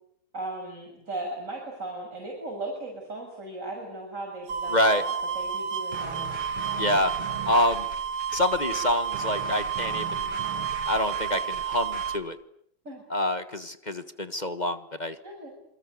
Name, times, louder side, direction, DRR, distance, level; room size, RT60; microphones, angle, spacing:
voice 1, 0.3-6.3 12.9-13.0 15.2-15.5, right 2 dB, 35° right, 0 dB, 6.8 m, -37 dB
sound 1, 4.5-12.2, right 7 dB, 60° right, 1.8 m, -31 dB
voice 2, 4.7-5.0 6.8-7.2 7.4-7.9 8.3-10.4 10.9-12.4 13.1-15.2, left 1 dB, 25° left, 11 dB, 1.3 m, -26 dB
sound 2, 5.9-12.3, right 6 dB, 90° right, 2.8 m, -39 dB
27.5 x 23.5 x 8.5 m, 0.69 s
omnidirectional pair, 2.3 m